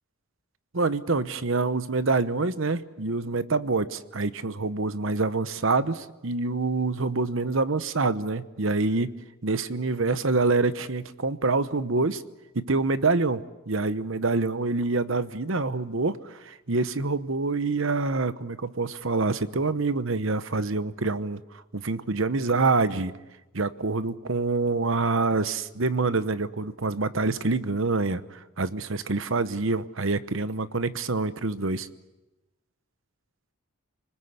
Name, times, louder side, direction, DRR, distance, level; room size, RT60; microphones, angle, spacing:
voice 1, 0.7-9.1 9.4-12.2 12.5-21.4 21.7-23.1 23.5-31.9, right 3 dB, 60° right, 14 dB, 0.9 m, -26 dB
28.5 x 20.0 x 8.1 m, 1.1 s
head